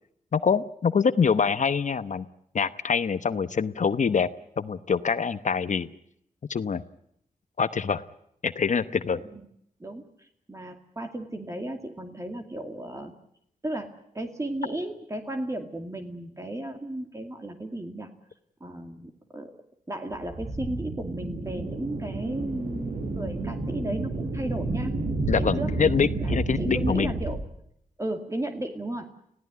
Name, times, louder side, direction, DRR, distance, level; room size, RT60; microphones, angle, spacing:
voice 1, 0.3-2.3 2.5-4.3 4.6-5.9 6.5-6.8 7.6-8.0 8.4-9.2 25.3-27.1, left 6 dB, 60° left, 13 dB, 0.9 m, -25 dB
voice 2, 9.8-13.1 13.6-18.1 18.6-19.5 19.9-24.9 25.3-25.7 26.2-27.4 28.0-29.1, right 1 dB, 20° right, 4 dB, 2.4 m, -34 dB
sound 1, 20.1-27.4, right 2 dB, 65° right, 5.8 m, -30 dB
26.5 x 16.5 x 9.5 m, 0.72 s
cardioid pair, 80°, 15 cm